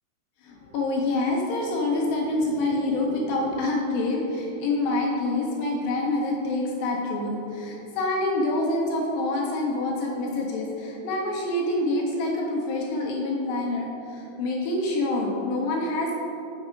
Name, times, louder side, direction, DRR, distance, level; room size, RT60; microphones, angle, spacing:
voice 1, 0.4-16.2, left 2 dB, 75° left, -2 dB, 2.2 m, -26 dB
7.1 x 5.4 x 5.0 m, 2.9 s
omnidirectional pair, 4.8 m